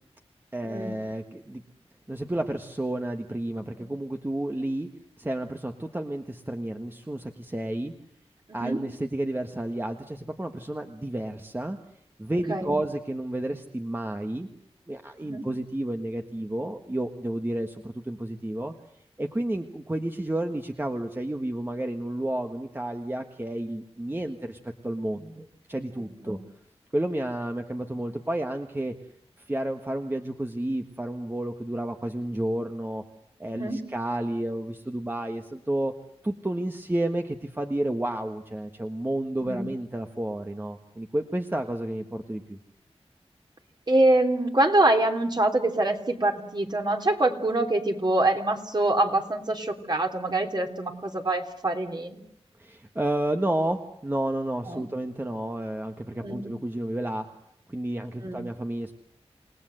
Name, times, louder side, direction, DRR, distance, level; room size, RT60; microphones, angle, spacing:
voice 1, 0.5-1.6 2.1-4.9 5.2-7.9 8.5-11.8 12.2-14.5 14.9-18.7 19.2-26.4 26.9-28.9 29.5-33.0 33.4-35.9 36.2-42.6 52.6-57.3 57.7-58.9, right 1 dB, 20° right, 5 dB, 1.5 m, -31 dB
voice 2, 26.0-26.4 33.5-33.8 39.4-39.7 43.9-52.1 54.7-54.8 56.1-56.5 58.2-58.4, right 2 dB, 40° right, 4 dB, 3.3 m, -25 dB
28.5 x 18.5 x 7.9 m, 0.72 s
wide cardioid pair, 70°, 11 cm